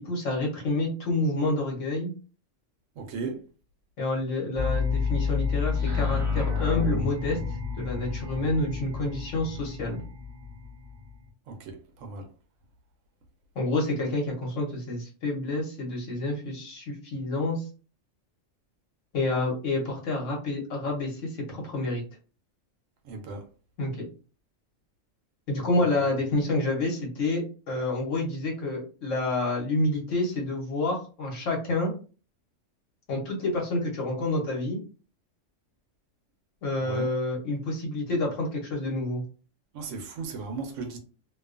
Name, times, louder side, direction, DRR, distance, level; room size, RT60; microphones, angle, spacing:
voice 1, 0.0-2.1 4.0-7.4 7.8-10.0 13.6-17.6 19.1-22.0 23.8-24.0 25.5-31.9 33.1-34.8 36.6-39.2, left 2 dB, 75° left, 1.2 m, -28 dB
voice 2, 3.0-3.4 11.5-12.3 23.0-23.4 36.8-37.1 39.7-41.0, right 4 dB, 80° right, 1.0 m, -36 dB
sound 1, 4.6-11.3, left 5 dB, 40° right, 1.0 m, -30 dB
2.5 x 2.2 x 2.4 m
omnidirectional pair, 1.3 m